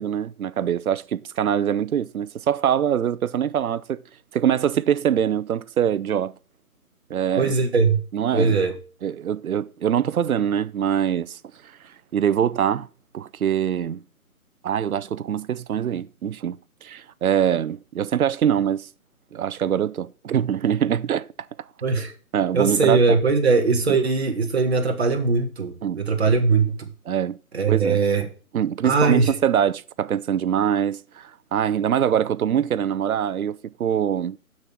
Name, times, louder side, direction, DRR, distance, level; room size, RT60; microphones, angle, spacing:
voice 1, 0.0-4.0 4.3-6.3 7.1-7.5 8.1-8.6 9.0-11.4 12.1-12.9 13.1-14.0 14.6-18.9 19.3-21.3 22.3-23.0 25.8-26.3 27.1-27.4 27.7-28.0 28.5-34.4, right 9 dB, 75° right, 0.6 m, -23 dB
voice 2, 7.4-8.0 8.3-8.7 21.8-22.1 22.5-26.9 27.5-28.3 28.8-29.4, right 4 dB, 45° right, 1.5 m, -20 dB
7.3 x 6.4 x 6.1 m
hypercardioid pair, 170°, 43 cm